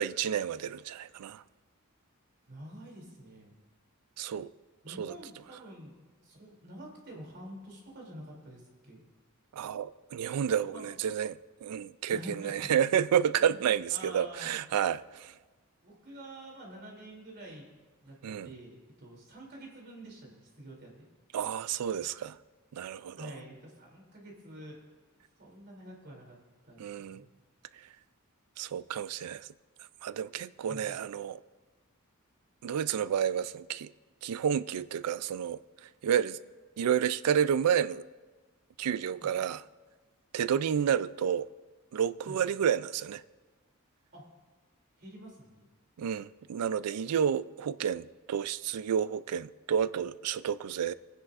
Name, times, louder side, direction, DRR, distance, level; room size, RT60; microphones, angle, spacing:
voice 1, 0.0-1.4 4.2-4.5 5.0-5.1 9.5-15.3 18.2-18.5 21.3-22.4 22.7-23.3 26.8-27.2 28.6-29.5 30.0-31.4 32.6-33.9 34.2-35.6 36.0-36.4 36.8-38.0 38.8-39.6 40.3-41.5 41.9-43.2 46.0-50.9, right 8 dB, 90° right, 0.4 m, -30 dB
voice 2, 2.5-3.5 4.8-9.0 10.7-10.9 12.1-12.7 13.4-13.6 13.9-14.5 15.8-17.6 18.0-20.9 23.1-24.8 25.4-26.4 26.6-27.2 30.7-30.9 39.2-39.3 40.5-40.6 42.3-42.4 44.1-44.2 45.0-45.7, right 1 dB, 50° right, 3.0 m, -47 dB
22.0 x 10.0 x 2.5 m
head